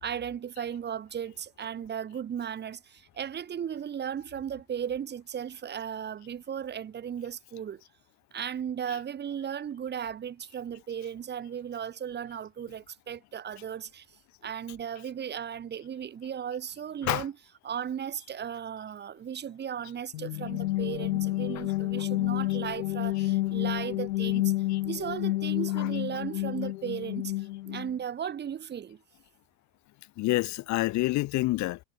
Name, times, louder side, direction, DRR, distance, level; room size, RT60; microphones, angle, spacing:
voice 1, 0.0-7.8 8.3-14.1 14.4-24.5 24.8-29.0, right 8 dB, 20° right, 3.0 m, -36 dB
sound 1, 20.1-27.9, left 17 dB, 60° left, 4.1 m, -30 dB
voice 2, 30.2-31.8, left 19 dB, 35° left, 2.0 m, -28 dB
hypercardioid pair, 120°, 49 cm